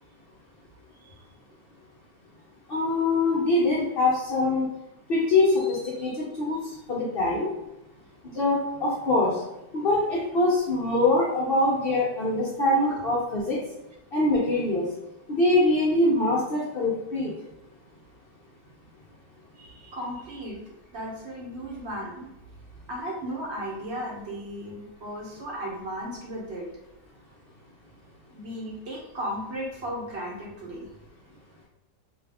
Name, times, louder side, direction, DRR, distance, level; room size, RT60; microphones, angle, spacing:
voice 1, 2.7-4.6 5.1-6.6 6.9-7.5 8.3-9.4 9.7-13.6 14.1-14.8 15.3-17.4, left 2 dB, 65° left, -6 dB, 0.5 m, -23 dB
voice 2, 19.6-20.6 20.9-22.3 22.9-26.7 28.3-30.9, equal, 50° right, -3 dB, 0.9 m, -35 dB
2.7 x 2.4 x 3.4 m, 0.93 s
omnidirectional pair, 1.7 m